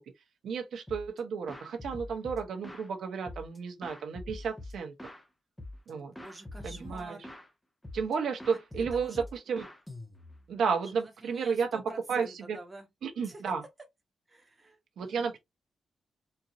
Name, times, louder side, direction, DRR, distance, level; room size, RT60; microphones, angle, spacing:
voice 1, 0.4-4.9 5.9-6.1 6.6-7.2 7.9-9.6 10.5-11.8 12.1-12.6 13.0-13.6 15.0-15.4, right 6 dB, 80° right, 1.0 m, -32 dB
sound 1, 0.9-1.2 1.5-2.9 3.3-5.2 5.6-5.9 6.2-7.5 7.8-8.1 8.4-10.5, left 1 dB, 10° left, 0.7 m, -44 dB
voice 2, 5.9-7.2 8.5-9.3 10.9-12.9 13.2-13.4 14.3-15.3, right 2 dB, 20° right, 1.2 m, -48 dB
4.5 x 2.6 x 2.7 m
wide cardioid pair, 160°, 0 cm